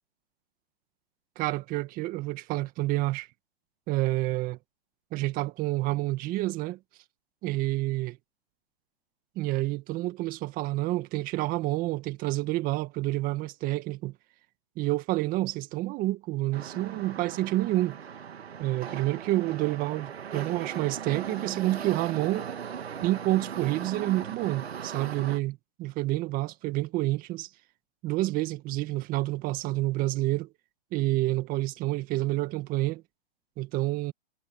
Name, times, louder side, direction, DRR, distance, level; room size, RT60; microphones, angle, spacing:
voice 1, 1.4-3.3 3.9-4.6 5.1-6.8 7.4-8.2 9.4-14.1 14.8-18.0 18.6-22.5 23.0-27.5 28.0-30.5 30.9-33.0 33.6-34.1, right 18 dB, 30° right, 1.9 m, -28 dB
sound 1, 16.5-25.4, right 7 dB, 90° right, 2.6 m, -38 dB
hypercardioid pair, 140°, 31 cm